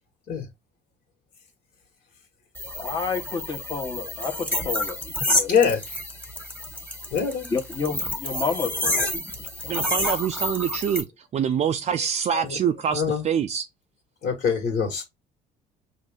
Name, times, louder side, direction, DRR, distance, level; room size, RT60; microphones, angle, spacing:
sound 1, 2.5-11.0, left 1 dB, 10° left, 1.7 m, -29 dB
voice 1, 2.8-5.0 5.3-5.5 7.5-9.1, left 5 dB, 25° left, 1.2 m, -29 dB
voice 2, 5.5-5.8 7.1-7.5 9.7-9.9 12.9-13.2 14.2-15.0, left 6 dB, 60° left, 1.8 m, -23 dB
voice 3, 9.7-11.0 11.3-13.7, right 8 dB, 40° right, 0.4 m, -25 dB
5.3 x 2.6 x 3.6 m
cardioid pair, 110°, 17 cm